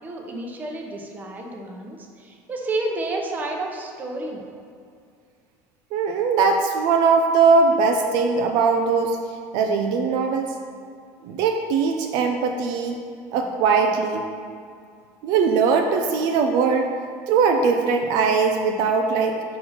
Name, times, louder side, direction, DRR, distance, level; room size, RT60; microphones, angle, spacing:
voice 1, 0.0-4.4, right 2 dB, 20° right, 1 dB, 0.8 m, -30 dB
voice 2, 5.9-9.2 9.5-10.5 11.2-13.0 13.3-14.3 15.2-16.9 17.3-19.4, right 5 dB, 65° right, 4 dB, 0.5 m, -20 dB
5.2 x 4.3 x 5.7 m, 2.3 s
cardioid pair, 145°, 8 cm